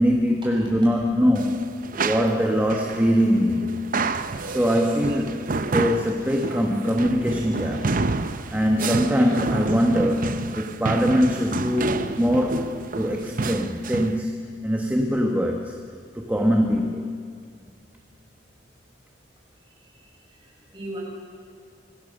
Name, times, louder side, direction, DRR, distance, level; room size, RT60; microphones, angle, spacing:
voice 1, 0.0-3.8 4.4-5.4 5.7-7.9 8.5-15.7 16.1-17.1, equal, 10° right, 1 dB, 1.3 m, -22 dB
sound 1, 1.3-14.2, right 3 dB, 50° right, 0.7 m, -29 dB
voice 2, 19.7-21.0, right 1 dB, 25° right, -3 dB, 6.6 m, -40 dB
25.0 x 17.0 x 6.7 m, 2.3 s
head